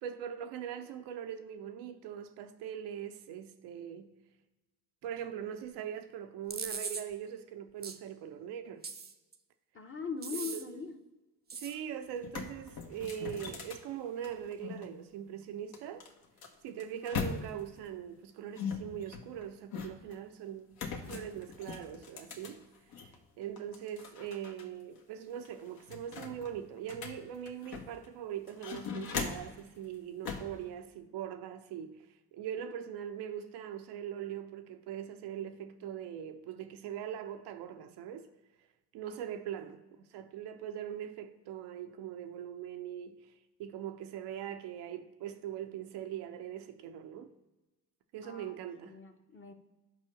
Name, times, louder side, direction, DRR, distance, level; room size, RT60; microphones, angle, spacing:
voice 1, 0.0-4.1 5.0-8.8 10.4-10.8 11.5-16.1 16.6-22.6 23.4-38.3 38.9-43.3 43.6-47.3 48.1-49.0, right 9 dB, 55° right, 0.7 m, -41 dB
sound 1, 6.5-7.0 7.8-8.0 8.8-9.3 10.2-10.6 11.5-11.7, right 5 dB, 20° right, 0.8 m, -39 dB
voice 2, 9.7-11.0 48.2-48.5 48.9-49.5, left 5 dB, 25° left, 1.1 m, -40 dB
sound 2, 11.7-11.8 12.1-14.8 15.7-17.8 18.6-20.2 20.7-23.2 23.6-24.6 25.0-25.1 25.4-28.1 28.5-29.6 30.2-30.6, left 5 dB, 50° left, 1.2 m, -40 dB
5.4 x 4.7 x 6.4 m
figure-of-eight pair, 50°, 47 cm